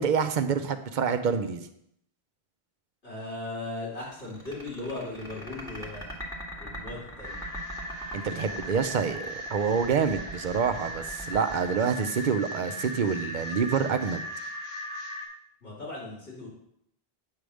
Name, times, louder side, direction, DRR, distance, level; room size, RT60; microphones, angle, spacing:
voice 1, 0.0-1.6 8.1-14.2, right 6 dB, 55° right, 9 dB, 0.7 m, -27 dB
voice 2, 3.0-6.1 6.6-7.4 15.6-16.5, left 2 dB, 85° left, -7 dB, 2.8 m, -37 dB
sound 1, 4.0-12.6, right 1 dB, 5° left, 1.6 m, -42 dB
sound 2, 7.2-15.3, equal, 55° left, 1.8 m, -38 dB
8.5 x 3.4 x 6.3 m, 0.74 s
omnidirectional pair, 1.0 m